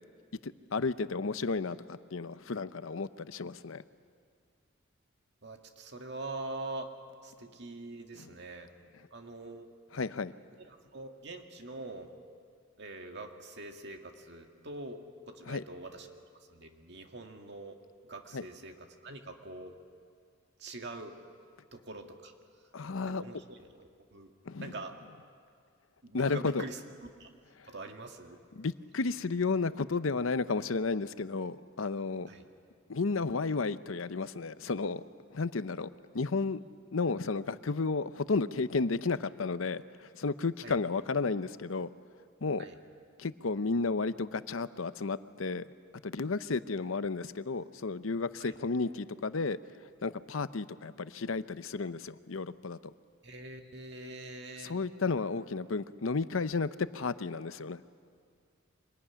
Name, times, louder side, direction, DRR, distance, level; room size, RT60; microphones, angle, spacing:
voice 1, 0.4-3.8 8.2-8.3 9.9-10.3 15.5-15.6 18.3-18.5 22.7-23.2 24.4-24.8 26.1-26.6 27.6-27.7 28.5-32.3 32.9-35.0 35.3-36.6 36.9-41.9 42.4-42.7 43.2-45.6 46.0-49.6 50.0-52.8 54.6-57.9, left 4 dB, 80° left, 13 dB, 0.7 m, -33 dB
voice 2, 5.4-6.9 7.2-8.7 9.1-9.7 10.9-12.1 12.8-16.1 16.5-17.8 18.1-19.7 20.6-21.1 21.7-22.3 23.1-24.3 24.6-24.9 26.0-26.8 27.2-27.3 27.7-28.4 32.3-32.5 40.6-40.8 42.6-42.8 48.4-48.5 53.2-54.8, right 2 dB, 55° right, 4 dB, 2.1 m, -44 dB
25.0 x 21.0 x 10.0 m, 2.2 s
head